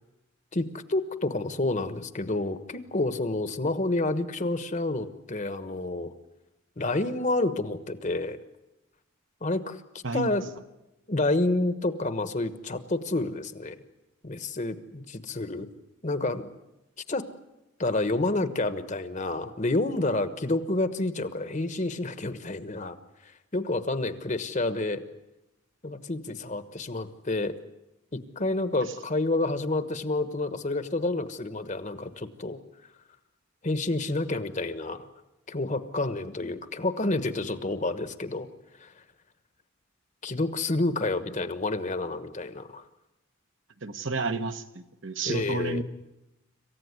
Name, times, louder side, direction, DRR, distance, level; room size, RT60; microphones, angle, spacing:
voice 1, 0.5-6.1 6.8-8.4 9.4-9.8 10.1-10.5 11.1-13.8 14.2-15.7 16.0-16.5 17.1-17.3 17.8-23.0 23.2-25.0 25.8-27.6 28.1-32.6 33.6-35.1 35.5-38.5 38.8-38.9 40.2-42.8 45.2-45.8, left 2 dB, 35° left, 12 dB, 1.2 m, -29 dB
voice 2, 43.8-45.8, right 3 dB, 60° right, 8 dB, 1.3 m, -31 dB
26.5 x 15.5 x 9.6 m, 0.95 s
head